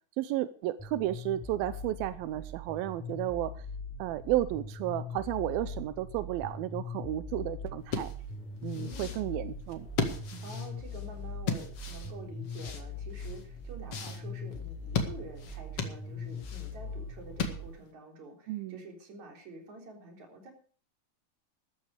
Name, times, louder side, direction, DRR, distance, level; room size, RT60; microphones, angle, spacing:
voice 1, 0.2-3.6 4.0-8.1 8.6-9.9 10.3-10.4 18.5-18.8, right 14 dB, 90° right, 13 dB, 2.6 m, -33 dB
sound 1, 0.8-17.7, left 3 dB, ahead, 4.8 m, -41 dB
sound 2, 7.8-17.9, left 5 dB, 45° left, 2.6 m, -37 dB
voice 2, 8.7-9.3 10.4-20.5, right 3 dB, 50° right, 3 dB, 5.0 m, -48 dB
14.0 x 13.0 x 4.9 m, 0.43 s
omnidirectional pair, 4.1 m